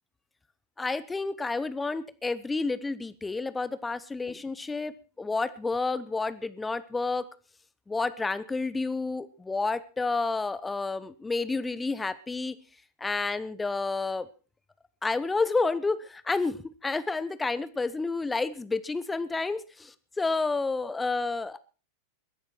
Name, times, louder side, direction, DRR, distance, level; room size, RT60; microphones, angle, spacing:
voice 1, 0.8-7.2 7.9-12.5 13.0-14.3 15.0-21.6, left 3 dB, 10° left, 15 dB, 0.9 m, -30 dB
21.5 x 11.0 x 4.5 m, 0.35 s
figure-of-eight pair, 90°, 0 cm